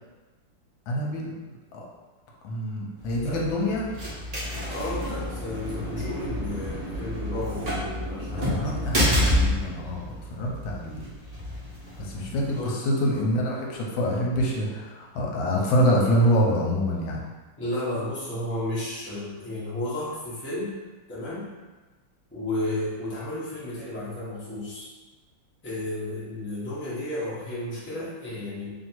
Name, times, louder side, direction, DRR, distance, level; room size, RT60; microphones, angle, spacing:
voice 1, 0.9-1.3 1.7-1.8 2.4-4.0 8.3-11.0 12.0-17.3, equal, 80° left, -2 dB, 1.4 m, -26 dB
sound 1, 3.0-12.6, left 1 dB, 30° right, 0.7 m, -29 dB
voice 2, 4.7-8.8 12.5-12.8 17.6-20.7 21.1-21.5 22.3-24.9 25.6-28.7, left 1 dB, 10° left, -9 dB, 0.6 m, -32 dB
3.1 x 2.7 x 4.4 m, 1.2 s
omnidirectional pair, 2.1 m